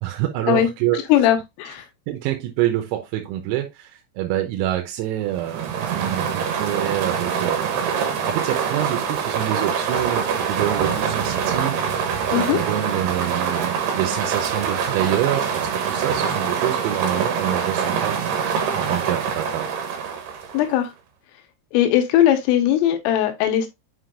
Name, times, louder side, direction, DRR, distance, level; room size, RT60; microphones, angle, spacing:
voice 1, 0.0-1.0 2.1-7.9 8.3-18.2 18.7-19.8, right 13 dB, 85° right, 3.6 m, -26 dB
voice 2, 0.9-1.9 12.3-12.6 20.5-20.9 21.7-23.7, left 11 dB, 90° left, 3.5 m, -19 dB
sound 1, 5.3-20.8, right 7 dB, 70° right, 2.7 m, -24 dB
7.7 x 5.3 x 2.5 m
omnidirectional pair, 5.9 m